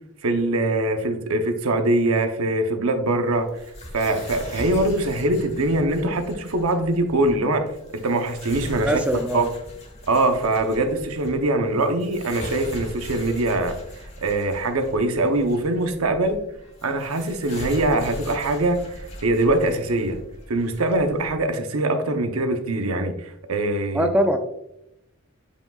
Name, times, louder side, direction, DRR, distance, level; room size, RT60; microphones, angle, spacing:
voice 1, 0.2-3.5 3.9-7.7 7.9-9.0 9.3-9.5 10.1-13.8 14.2-16.4 16.8-20.2 20.5-24.1, right 2 dB, 85° right, 6 dB, 0.8 m, -23 dB
sound 1, 3.3-21.4, left 1 dB, 30° left, 1.3 m, -40 dB
voice 2, 8.8-9.5 23.9-24.4, equal, 5° right, 5 dB, 0.3 m, -21 dB
7.9 x 5.1 x 2.4 m, 0.82 s
head